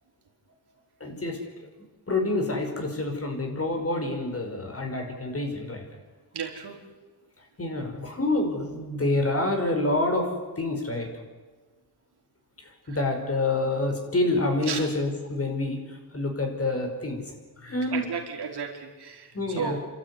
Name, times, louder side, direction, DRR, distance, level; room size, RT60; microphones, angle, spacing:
voice 1, 1.0-1.7 2.1-5.9 7.6-10.3 10.6-11.1 12.6-17.2 17.6-18.1 19.3-19.8, left 2 dB, 35° left, 3 dB, 5.3 m, -27 dB
voice 2, 6.3-6.8 14.7-14.8 17.9-19.3 19.6-19.9, right 6 dB, 85° right, 2 dB, 4.0 m, -33 dB
29.5 x 13.0 x 9.8 m, 1.3 s
wide cardioid pair, 110°, 38 cm